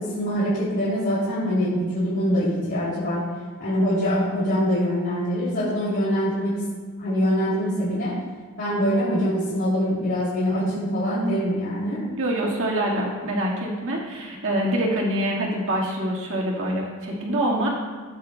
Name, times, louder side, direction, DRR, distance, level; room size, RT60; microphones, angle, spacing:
voice 1, 0.0-3.2 3.6-6.6 7.0-8.1 8.6-12.0, equal, 55° left, -10 dB, 3.2 m, -24 dB
voice 2, 12.2-17.7, right 1 dB, 60° right, -2 dB, 1.9 m, -25 dB
15.0 x 9.1 x 2.3 m, 1.5 s
head